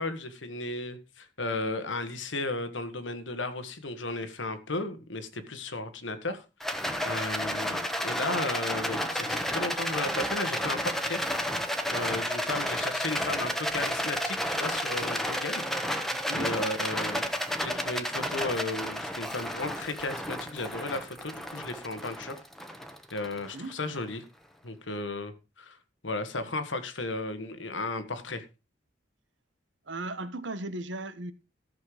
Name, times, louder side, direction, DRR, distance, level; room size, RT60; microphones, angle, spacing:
voice 1, 0.0-11.2 11.9-16.1 16.4-17.2 17.6-22.4 23.1-24.2 24.6-25.8 26.0-28.4, left 2 dB, 90° left, 1.6 m, -34 dB
Rattle, 6.6-24.0, equal, ahead, 1.2 m, -32 dB
voice 2, 16.1-16.6 23.5-23.8 24.9-25.0 29.8-31.3, right 2 dB, 75° right, 1.2 m, -37 dB
14.0 x 6.7 x 5.0 m
head